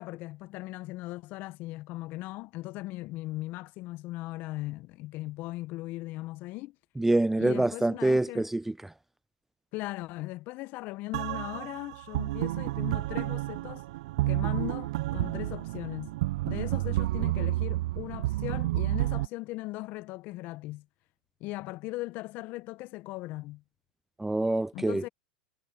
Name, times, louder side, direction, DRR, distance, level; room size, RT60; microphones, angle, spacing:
voice 1, 0.0-6.8 7.4-8.5 9.7-13.8 14.3-16.1 16.4-20.9 21.4-23.6 24.7-25.1, left 19 dB, 50° left, 1.6 m, -38 dB
voice 2, 7.0-8.9 24.2-25.1, right 2 dB, 5° right, 0.3 m, -26 dB
sound 1, 11.1-19.3, right 18 dB, 65° right, 0.9 m, -30 dB
hypercardioid pair, 95°, 4 cm